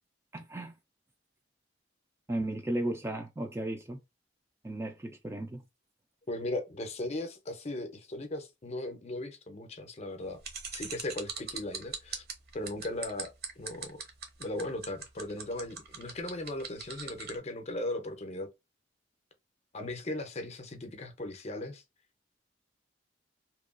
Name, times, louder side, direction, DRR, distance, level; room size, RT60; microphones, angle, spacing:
voice 1, 0.3-0.7 2.3-4.0 4.6-5.6, right 1 dB, 15° right, 0.3 m, -35 dB
voice 2, 6.3-10.4 10.7-12.2 12.5-13.3 13.6-14.0 14.4-18.5 19.7-21.8, left 1 dB, 35° left, 0.6 m, -37 dB
sound 1, 10.4-17.3, right 6 dB, 55° right, 0.8 m, -40 dB
2.9 x 2.3 x 2.4 m
head